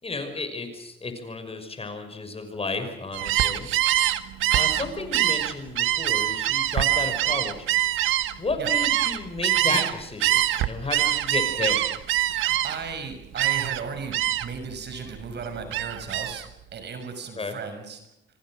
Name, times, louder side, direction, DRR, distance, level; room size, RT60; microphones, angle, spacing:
voice 1, 0.0-3.7 4.5-7.7 8.4-11.8 17.4-17.6, left 3 dB, 30° left, 7 dB, 6.0 m, -32 dB
Gull seagull, 3.1-9.9 10.2-12.9 13.4-13.8 14.1-14.6 15.0-16.4, right 14 dB, 90° right, 1.3 m, -24 dB
voice 2, 12.3-16.5 16.7-18.0, right 5 dB, 60° right, 8 dB, 6.4 m, -36 dB
27.0 x 25.0 x 6.4 m, 0.80 s
cardioid pair, 90°, 20 cm